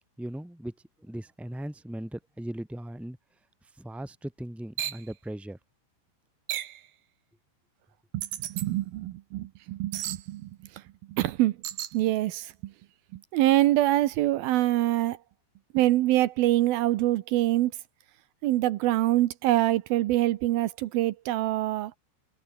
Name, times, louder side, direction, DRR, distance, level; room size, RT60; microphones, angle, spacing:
voice 1, 0.2-3.2 3.6-5.6, right 1 dB, ahead, 4.6 m, -38 dB
sound 1, 4.8-5.0 6.5-6.8 8.2-8.7 9.9-10.2 11.6-11.9, right 12 dB, 60° right, 2.9 m, -33 dB
voice 2, 8.1-10.8 11.1-11.6 11.9-12.7 13.1-15.2 15.7-17.7 18.4-21.9, right 15 dB, 80° right, 2.1 m, -25 dB
omnidirectional pair, 5.6 m